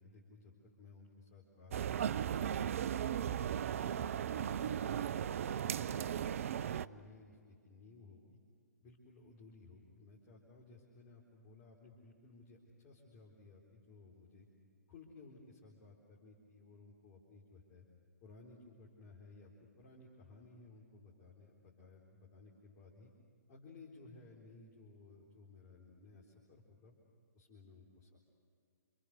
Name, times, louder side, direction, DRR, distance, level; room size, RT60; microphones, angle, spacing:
voice 1, 0.0-2.8 3.2-8.4 8.8-14.5 14.9-17.8 18.2-23.1 23.5-26.9 27.3-28.2, left 3 dB, 30° left, -2 dB, 4.1 m, -58 dB
sound 1, 1.7-6.9, right 9 dB, 50° right, 0.6 m, -36 dB
28.5 x 27.5 x 6.8 m, 2.2 s
figure-of-eight pair, 125°, 9 cm